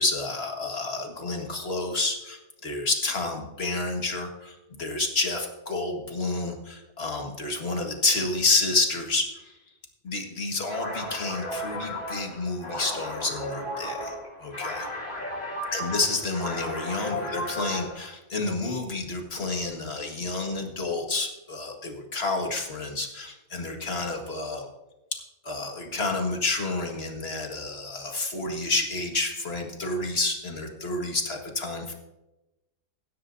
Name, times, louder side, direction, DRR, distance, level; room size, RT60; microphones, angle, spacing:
voice 1, 0.0-9.6 10.0-14.1 14.4-14.9 15.7-24.7 25.4-31.9, left 3 dB, 45° left, 2 dB, 2.0 m, -29 dB
sound 1, 10.7-18.1, left 1 dB, 30° left, 2.6 m, -34 dB
17.0 x 11.5 x 2.7 m, 0.98 s
omnidirectional pair, 1.5 m